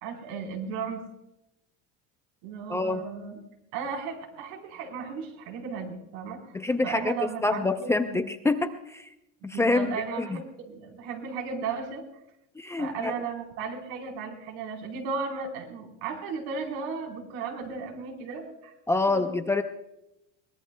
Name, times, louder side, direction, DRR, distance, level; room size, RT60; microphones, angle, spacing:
voice 1, 0.0-1.0 2.4-3.4 3.7-6.5 6.8-8.2 9.5-12.0 12.8-18.7 19.1-19.4, right 5 dB, 75° right, 3 dB, 4.0 m, -35 dB
voice 2, 6.5-7.1 7.4-9.1 9.4-9.9 12.6-13.1 18.9-19.6, left 3 dB, 10° left, 7 dB, 0.6 m, -26 dB
22.5 x 19.5 x 2.3 m, 0.87 s
cardioid pair, 150°, 30 cm